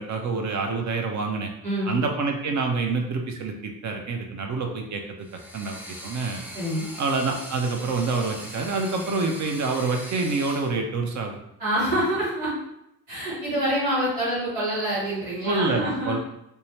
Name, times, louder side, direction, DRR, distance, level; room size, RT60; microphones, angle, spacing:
voice 1, 0.0-1.5 1.9-5.0 5.5-6.4 7.0-11.4 11.9-12.0 15.4-16.2, right 3 dB, 45° right, 3 dB, 0.6 m, -27 dB
voice 2, 1.6-2.0 6.5-6.9 11.6-12.5 13.1-16.1, right 1 dB, 90° right, -10 dB, 1.5 m, -26 dB
sound 1, 5.2-10.7, equal, 5° right, 0.6 m, -40 dB
2.7 x 2.2 x 3.1 m, 0.81 s
hypercardioid pair, 45°, 42 cm